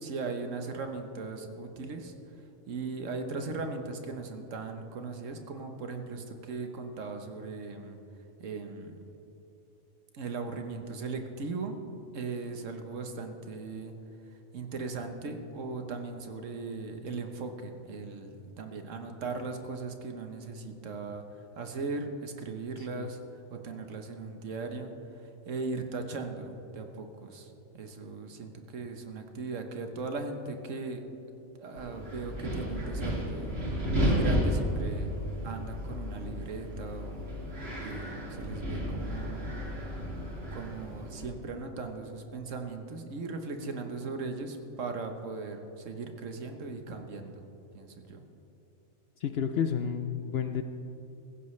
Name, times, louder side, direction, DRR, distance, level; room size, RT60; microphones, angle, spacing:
voice 1, 0.0-2.1 2.7-8.0 8.4-8.9 10.1-11.7 12.1-13.9 14.5-21.2 21.6-23.2 23.5-24.9 25.5-27.5 27.8-31.0 31.6-33.5 34.0-35.1 35.4-37.3 37.8-39.5 40.5-47.5 47.7-48.2, right 4 dB, 65° right, 5 dB, 1.4 m, -38 dB
voice 2, 22.8-23.1 49.2-50.6, left 7 dB, 65° left, 7 dB, 0.7 m, -31 dB
Wind, 31.8-41.3, equal, 45° right, 2.8 m, -32 dB
15.5 x 15.5 x 3.2 m, 3.0 s
omnidirectional pair, 1.4 m